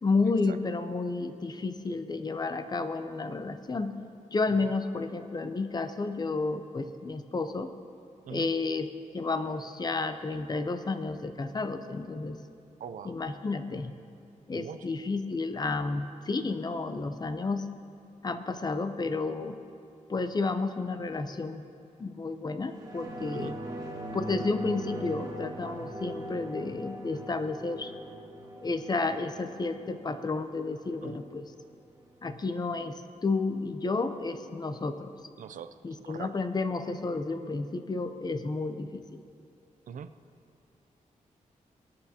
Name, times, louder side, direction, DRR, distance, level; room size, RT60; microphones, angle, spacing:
voice 1, 0.0-4.0 4.3-7.7 8.3-8.9 9.1-12.4 13.0-13.9 14.5-17.6 18.2-19.6 20.1-21.6 22.0-23.5 24.1-27.9 28.6-31.5 32.2-32.9 33.2-35.1 35.8-39.0, left 3 dB, 30° left, 9 dB, 0.6 m, -31 dB
voice 2, 12.8-13.1 14.5-14.8 23.3-23.5 25.8-25.9 31.0-31.2 35.4-35.7 36.0-36.3 39.9-40.1, right 8 dB, 75° right, 11 dB, 0.5 m, -42 dB
sound 1, 22.7-31.7 32.1-32.2, right 1 dB, 25° right, 1.4 m, -41 dB
22.5 x 9.2 x 2.8 m, 2.5 s
wide cardioid pair, 110°, 13 cm